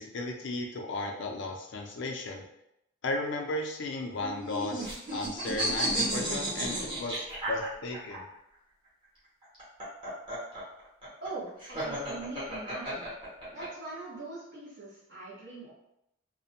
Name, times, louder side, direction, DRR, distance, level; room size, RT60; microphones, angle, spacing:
voice 1, 0.0-2.4 3.0-8.2, left 2 dB, 55° left, 2 dB, 0.4 m, -35 dB
sound 1, 4.1-8.2 9.4-13.7, right 1 dB, 25° right, 0.9 m, -33 dB
voice 2, 11.2-13.1 13.5-15.7, right 3 dB, 50° right, -9 dB, 0.9 m, -42 dB
2.5 x 2.1 x 2.7 m, 0.80 s
head